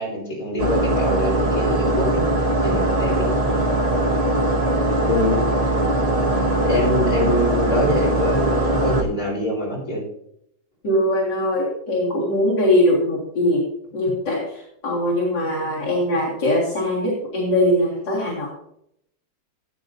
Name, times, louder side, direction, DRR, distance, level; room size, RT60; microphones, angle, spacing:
voice 1, 0.0-2.2 2.6-3.3 5.0-5.4 6.6-10.0, left 1 dB, 45° left, -5 dB, 4.8 m, -24 dB
sound 1, 0.6-9.0, right 1 dB, 35° right, 1.8 m, -20 dB
voice 2, 10.8-13.6 13.9-18.5, left 1 dB, 70° left, -6 dB, 2.8 m, -21 dB
16.0 x 8.8 x 2.7 m, 0.74 s
omnidirectional pair, 2.0 m